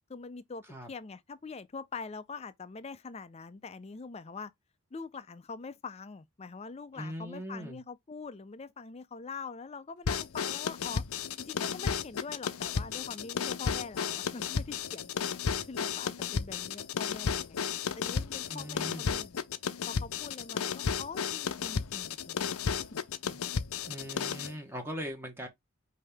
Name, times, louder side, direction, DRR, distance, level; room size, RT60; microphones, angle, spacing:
voice 1, 0.1-4.5 4.9-11.0 11.4-15.1 15.7-17.6 18.0-19.4 19.9-22.4, left 4 dB, 30° left, 0.4 m, -44 dB
voice 2, 6.9-7.8 18.5-19.0 23.2-23.4 23.9-25.5, equal, 10° right, 1.0 m, -40 dB
sound 1, 10.1-24.5, left 6 dB, 80° left, 0.6 m, -33 dB
5.3 x 2.8 x 3.4 m
head